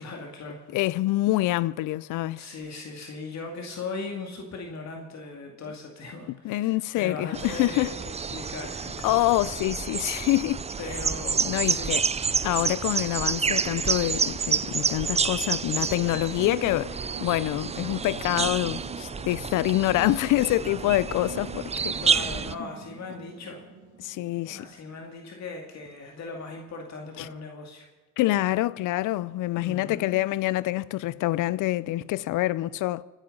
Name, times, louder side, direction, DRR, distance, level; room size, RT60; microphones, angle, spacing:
voice 1, 0.0-0.6 2.4-9.2 10.8-12.1 21.9-23.6 24.5-27.9 29.6-30.2, left 3 dB, 60° left, 2.4 m, -38 dB
voice 2, 0.7-2.4 6.4-7.9 9.0-10.6 11.4-12.0 12.4-22.0 24.0-24.7 27.2-27.3 28.2-33.0, left 16 dB, 85° left, 0.6 m, -26 dB
sound 1, 7.3-22.5, right 5 dB, 20° right, 0.5 m, -29 dB
Singing / Musical instrument, 15.4-25.5, right 5 dB, 80° right, 2.2 m, -43 dB
25.0 x 9.1 x 5.4 m
cardioid pair, 90°, 30 cm